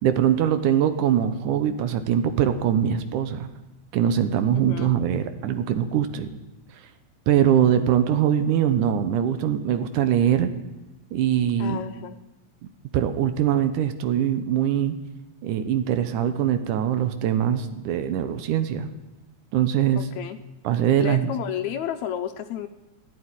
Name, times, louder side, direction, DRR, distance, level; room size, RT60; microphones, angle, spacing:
voice 1, 0.0-3.5 3.9-6.3 7.3-10.5 11.1-11.8 12.9-15.0 15.4-18.9 19.5-20.0 20.6-21.3, right 9 dB, 90° right, 9 dB, 2.5 m, -22 dB
voice 2, 4.6-5.0 11.6-12.2 20.0-20.4 21.0-22.7, left 10 dB, 75° left, 8 dB, 1.9 m, -31 dB
15.5 x 9.4 x 9.9 m, 1.0 s
omnidirectional pair, 3.5 m